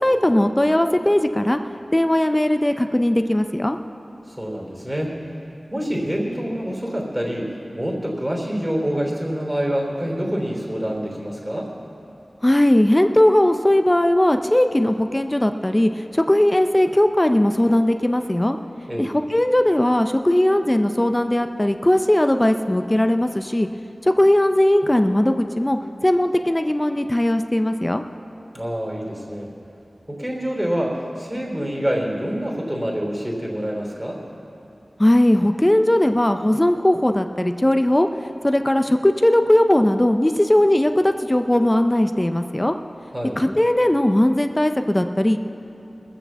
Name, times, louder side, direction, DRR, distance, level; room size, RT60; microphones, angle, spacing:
voice 1, 0.0-1.6 1.9-3.8 12.4-18.6 19.0-23.7 24.0-28.0 35.0-38.1 38.4-42.7 43.4-45.4, left 1 dB, 20° left, 7 dB, 0.5 m, -18 dB
voice 2, 4.3-5.2 5.7-11.7 18.9-19.1 28.5-29.5 30.1-34.2 43.1-43.4, equal, 15° right, -1 dB, 3.1 m, -26 dB
20.5 x 6.9 x 7.3 m, 2.8 s
wide cardioid pair, 45°, 0 cm